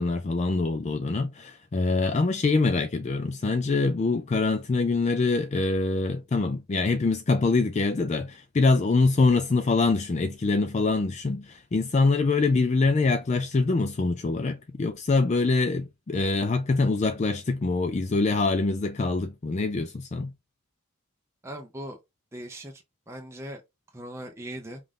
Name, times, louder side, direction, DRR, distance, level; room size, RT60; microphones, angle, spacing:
voice 1, 0.0-20.3, left 3 dB, 30° left, 0.3 m, -24 dB
voice 2, 21.4-22.0 22.3-23.6 23.9-24.8, right 1 dB, 10° right, 0.6 m, -39 dB
5.4 x 2.5 x 3.6 m
head